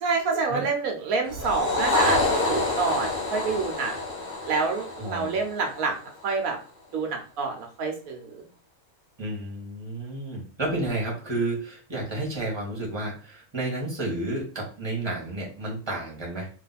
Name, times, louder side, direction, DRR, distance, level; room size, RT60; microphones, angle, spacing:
voice 1, 0.0-5.9 6.2-6.6 6.9-8.5, right 4 dB, 85° right, 2 dB, 1.3 m, -28 dB
sound 1, 1.3-5.9, left 2 dB, 40° left, 1.6 m, -27 dB
voice 2, 5.0-5.3 9.2-16.5, right 2 dB, 20° right, -3 dB, 1.6 m, -31 dB
3.3 x 3.1 x 4.1 m, 0.38 s
omnidirectional pair, 1.4 m